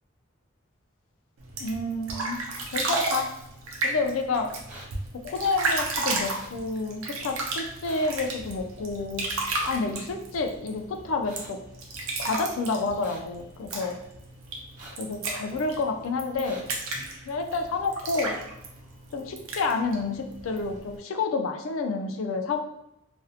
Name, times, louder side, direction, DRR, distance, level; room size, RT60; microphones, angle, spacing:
sound 1, 1.4-21.0, right 2 dB, 85° right, 0.5 m, -33 dB
voice 1, 1.6-2.4 2.7-3.3 3.8-4.5 5.1-9.3 9.7-11.6 12.2-14.0 15.0-16.6 17.3-18.4 19.1-22.6, left 3 dB, 75° left, 5 dB, 0.4 m, -29 dB
sound 2, 4.7-4.9 6.3-6.5 7.8-8.1 9.5-9.7 11.3-11.5 13.0-13.2 14.8-15.0 16.4-16.6, right 1 dB, 40° right, 0.6 m, -44 dB
2.5 x 2.0 x 2.7 m, 0.83 s
head